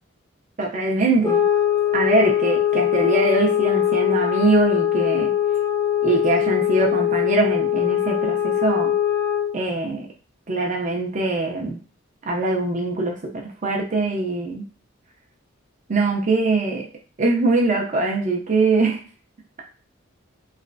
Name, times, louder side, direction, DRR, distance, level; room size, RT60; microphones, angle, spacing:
voice 1, 0.6-1.4 1.9-5.3 6.0-8.9 9.5-10.1 10.5-11.8 12.3-14.6 15.9-16.9 17.2-19.0, right 3 dB, 40° right, 1 dB, 0.5 m, -22 dB
sound 1, 1.2-9.6, left 10 dB, 15° left, 0.3 m, -21 dB
3.2 x 2.9 x 2.6 m, 0.38 s
head